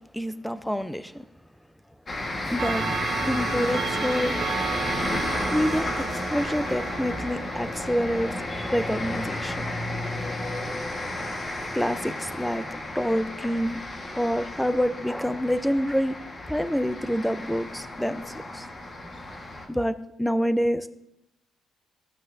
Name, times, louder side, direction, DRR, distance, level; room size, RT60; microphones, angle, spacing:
voice 1, 0.1-1.2 2.5-2.9 3.2-4.4 5.5-9.6 11.7-12.6 12.9-13.8 14.1-16.1 16.5-18.7 19.7-20.9, equal, 5° left, 12 dB, 0.5 m, -27 dB
sound 1, 2.1-19.7, left 1 dB, 35° left, 1.4 m, -32 dB
Clock, 2.6-8.6, right 7 dB, 65° right, 0.6 m, -33 dB
14.5 x 6.0 x 2.6 m, 0.83 s
cardioid pair, 90°, 0 cm